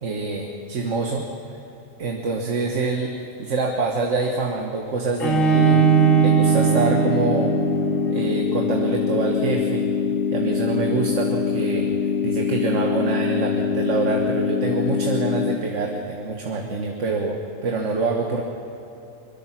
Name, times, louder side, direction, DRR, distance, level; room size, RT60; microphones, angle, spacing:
voice 1, 0.0-1.3 2.0-3.1 3.4-5.9 6.2-7.6 8.1-9.9 10.3-11.9 12.2-18.4, right 3 dB, 65° right, 2 dB, 1.7 m, -25 dB
Bowed string instrument, 5.2-8.2, right 9 dB, 75° left, 2.5 m, -19 dB
sound 1, 5.5-15.6, left 6 dB, 50° left, 1.0 m, -24 dB
23.0 x 22.5 x 6.0 m, 2.9 s
omnidirectional pair, 1.4 m